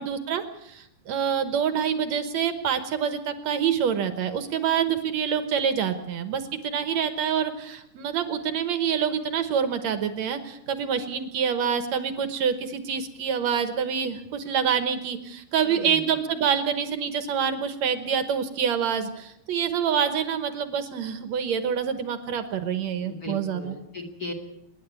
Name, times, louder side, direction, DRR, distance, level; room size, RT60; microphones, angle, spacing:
voice 1, 0.0-23.8, right 7 dB, 65° right, 10 dB, 1.9 m, -26 dB
voice 2, 15.6-16.1 23.0-24.3, left 2 dB, 30° left, 5 dB, 1.9 m, -37 dB
26.5 x 10.5 x 9.5 m, 0.83 s
omnidirectional pair, 4.4 m